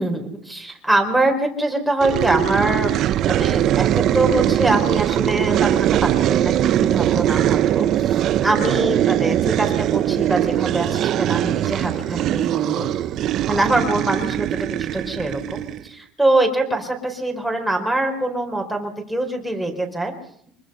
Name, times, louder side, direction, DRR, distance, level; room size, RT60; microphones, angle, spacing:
voice 1, 0.0-2.9 3.3-12.9 13.5-20.1, right 2 dB, ahead, 1 dB, 4.6 m, -23 dB
sound 1, 2.0-15.9, right 12 dB, 40° right, 0.8 m, -21 dB
25.5 x 23.5 x 5.6 m, 0.63 s
cardioid pair, 155°, 0 cm